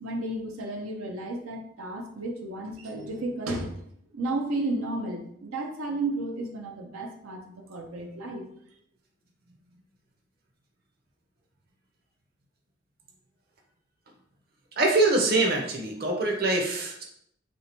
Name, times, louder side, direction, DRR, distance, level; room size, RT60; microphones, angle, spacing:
voice 1, 0.0-3.7 4.1-8.4, right 2 dB, 90° right, 2 dB, 0.6 m, -33 dB
voice 2, 14.8-17.0, right 2 dB, 45° right, 0 dB, 0.7 m, -24 dB
3.3 x 2.7 x 4.4 m, 0.71 s
head